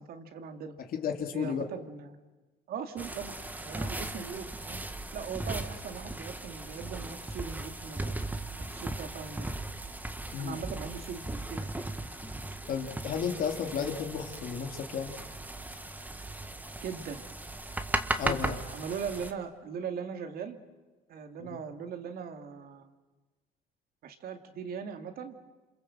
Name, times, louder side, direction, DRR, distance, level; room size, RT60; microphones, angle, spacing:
voice 1, 0.0-0.7 1.3-2.2 2.7-4.8 5.1-8.1 8.6-9.5 10.4-11.9 16.8-17.2 18.2-20.6 21.1-22.9 24.0-25.4, right 6 dB, 65° right, 7 dB, 2.4 m, -40 dB
voice 2, 0.9-1.7 10.3-10.6 12.7-15.2 18.2-18.6 21.5-21.6, left 7 dB, 60° left, 4 dB, 3.2 m, -33 dB
sound 1, 3.0-19.3, right 2 dB, 10° right, 1.6 m, -37 dB
28.0 x 26.5 x 7.8 m, 1.2 s
cardioid pair, 110°, 17 cm